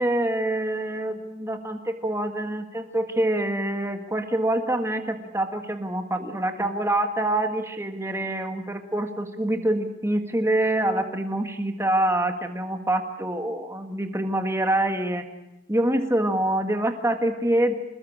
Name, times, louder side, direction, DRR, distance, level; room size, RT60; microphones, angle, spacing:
voice 1, 0.0-15.2 15.7-17.7, right 1 dB, 10° right, 6 dB, 1.8 m, -25 dB
27.0 x 20.5 x 8.8 m, 0.89 s
head